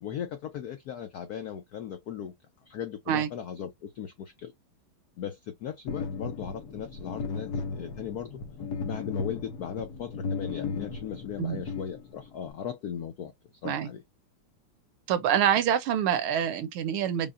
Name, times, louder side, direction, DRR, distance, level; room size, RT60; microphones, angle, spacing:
voice 1, 0.0-2.3 2.7-4.5 5.2-8.4 8.8-13.3 13.6-14.0, left 8 dB, 85° left, 0.8 m, -37 dB
sound 1, 5.9-12.5, left 4 dB, 65° left, 1.0 m, -36 dB
voice 2, 15.1-17.3, right 9 dB, 80° right, 1.5 m, -26 dB
5.4 x 2.1 x 2.4 m
omnidirectional pair, 2.4 m